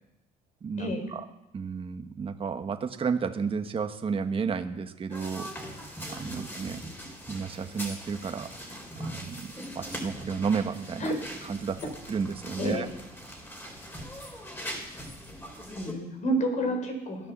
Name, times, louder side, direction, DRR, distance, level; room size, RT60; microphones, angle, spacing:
voice 1, 0.6-0.9 1.5-5.5 5.8-6.8 7.3-11.2 11.5-11.8 12.1-12.9, right 5 dB, 35° right, 7 dB, 1.1 m, -32 dB
sound 1, 5.1-15.9, equal, 10° left, 4.3 m, -41 dB
voice 2, 15.7-17.3, right 1 dB, 45° left, 5 dB, 4.5 m, -29 dB
16.5 x 11.0 x 7.3 m, 0.91 s
cardioid pair, 110°, 17 cm